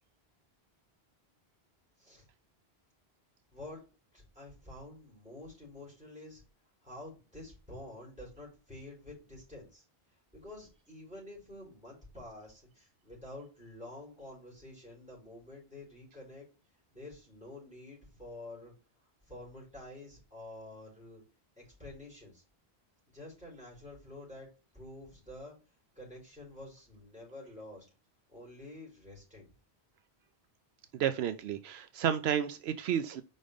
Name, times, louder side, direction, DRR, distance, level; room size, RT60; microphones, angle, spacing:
voice 1, 3.5-3.8 4.1-6.4 6.8-9.8 10.1-16.5 16.9-18.7 19.0-21.2 21.6-22.4 23.1-24.5 24.7-25.6 26.0-27.9 28.3-29.5, left 1 dB, 5° right, 3.9 m, -49 dB
voice 2, 30.9-33.2, right 9 dB, 80° right, 0.8 m, -31 dB
5.1 x 4.0 x 5.0 m
omnidirectional pair, 1.1 m